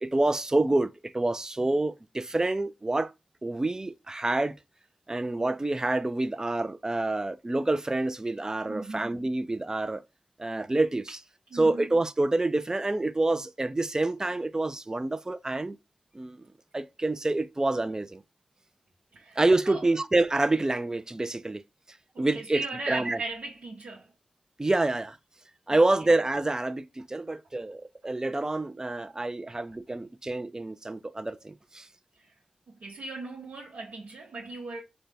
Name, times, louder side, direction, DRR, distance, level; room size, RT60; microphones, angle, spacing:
voice 1, 0.0-3.1 3.4-4.6 5.1-10.0 10.4-11.2 11.5-15.8 16.1-16.5 16.7-18.2 19.4-21.6 22.2-23.2 24.6-25.2 25.7-31.9, right 2 dB, 25° right, 0.4 m, -27 dB
voice 2, 8.7-9.1 11.5-11.9 19.1-19.4 19.7-19.8 22.1-24.1 25.7-25.8 29.5-29.6 32.2-32.3 32.8-34.8, right 3 dB, 80° right, 0.9 m, -38 dB
4.0 x 2.2 x 3.3 m
cardioid pair, 45°, 2 cm